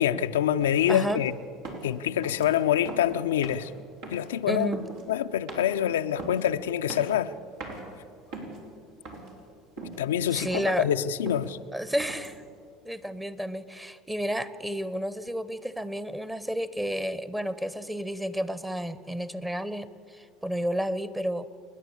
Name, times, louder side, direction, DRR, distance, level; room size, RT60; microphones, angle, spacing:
voice 1, 0.0-1.3 1.8-3.7 4.1-4.7 5.1-7.3 10.0-11.6, left 10 dB, 80° left, 0.6 m, -26 dB
sound 1, 0.6-0.8 1.1-1.3 1.6-2.0 2.2-2.5 2.8-3.1 3.4-3.7 4.0-4.4 4.7-5.0 5.5-5.8 6.2-6.4 6.9-7.3 7.6-7.8 8.3-8.7 9.0-9.4 9.8-10.1 10.3-10.8 11.3-11.5 12.0-12.4, right 3 dB, 70° right, 4.6 m, -40 dB
voice 2, 0.9-1.2 4.5-4.8 10.3-10.9 11.7-12.4 12.8-21.5, equal, 10° right, 1.2 m, -31 dB
29.5 x 10.5 x 8.6 m
hypercardioid pair, 75°, 0 cm